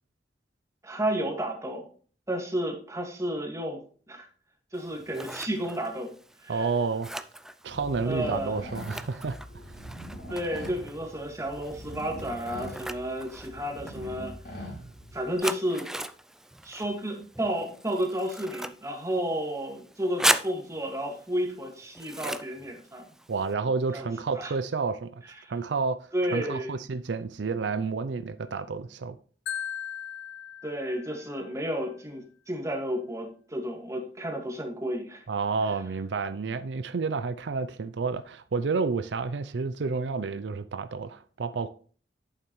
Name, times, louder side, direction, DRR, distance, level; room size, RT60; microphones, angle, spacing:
voice 1, 0.8-1.9 2.3-3.8 4.1-4.3 4.7-6.1 6.4-6.7 8.0-8.6 10.3-14.3 15.1-15.9 16.6-23.1 23.9-24.1 24.4-24.5 25.4-25.5 26.1-26.7 30.6-35.2, equal, 20° right, 2.0 m, -32 dB
Scissors, 4.7-23.5, right 1 dB, 5° right, 0.4 m, -37 dB
voice 2, 6.5-7.1 7.6-9.4 23.3-25.2 25.5-29.2 35.3-41.7, right 4 dB, 85° right, 0.5 m, -30 dB
sound 1, 7.7-15.4, equal, 55° left, 3.0 m, -42 dB
Marimba xylophone, 29.5-31.5, left 9 dB, 80° left, 0.6 m, -38 dB
8.8 x 7.2 x 3.1 m
head